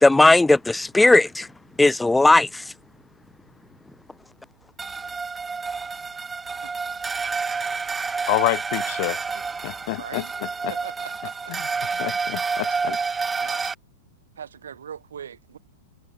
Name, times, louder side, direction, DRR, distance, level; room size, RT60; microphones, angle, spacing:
voice 1, 0.0-1.5 1.8-2.6, left 2 dB, 5° left, 0.9 m, -16 dB
sound 1, 4.8-13.7, right 4 dB, 15° right, 1.7 m, -29 dB
voice 2, 8.3-9.2 9.6-10.7 11.5-11.7 12.0-13.0, left 24 dB, 45° left, 5.2 m, -28 dB
voice 3, 10.0-10.3 10.7-11.9 12.6-12.7 13.4-13.6 14.4-15.6, right 8 dB, 65° right, 3.5 m, -40 dB
figure-of-eight pair, 95°, 0 cm